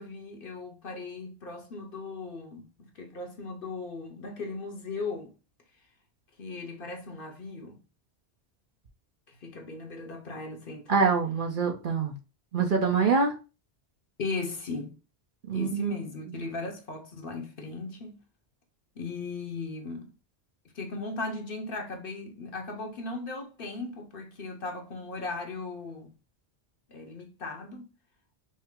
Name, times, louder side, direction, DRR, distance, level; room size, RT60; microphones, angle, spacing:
voice 1, 0.0-5.3 6.4-7.8 9.4-10.9 14.2-14.9 15.5-18.2 19.0-20.1 20.7-26.1 26.9-27.9, left 3 dB, 55° left, 1.0 m, -37 dB
voice 2, 10.9-12.1 12.5-13.3 15.5-15.9 16.3-16.4, right 5 dB, 50° right, 0.9 m, -25 dB
5.5 x 2.0 x 3.5 m
omnidirectional pair, 1.1 m